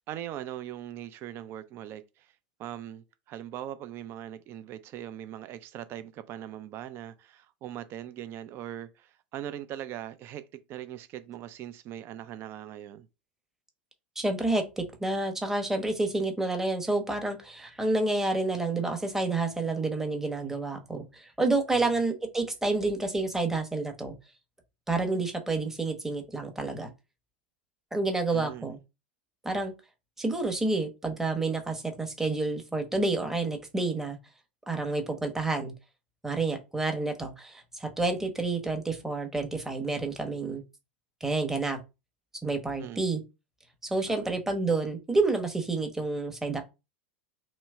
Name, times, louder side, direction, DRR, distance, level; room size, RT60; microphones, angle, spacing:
voice 1, 0.0-2.3 2.6-13.1 21.7-22.0 28.3-28.7 42.8-43.1 44.1-44.3, right 11 dB, 40° right, 0.6 m, -41 dB
voice 2, 14.2-24.1 24.9-26.9 27.9-28.8 29.4-29.7 30.2-34.2 34.7-35.7 36.2-40.6 41.2-41.8 42.4-43.2 43.8-46.6, right 3 dB, 5° right, 1.0 m, -29 dB
3.1 x 3.0 x 4.6 m
hypercardioid pair, 90°, 6 cm